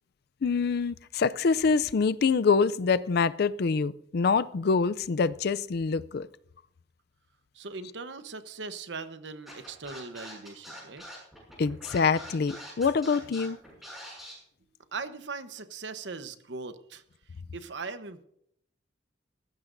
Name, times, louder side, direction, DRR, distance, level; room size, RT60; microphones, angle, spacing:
voice 1, 0.4-6.3 11.6-13.6, left 5 dB, 60° left, 0.4 m, -25 dB
voice 2, 7.5-11.0 14.9-17.0 17.5-18.2, right 4 dB, 75° right, 1.0 m, -39 dB
Scratching (performance technique), 9.5-14.3, equal, ahead, 6.6 m, -44 dB
18.5 x 15.5 x 2.6 m
head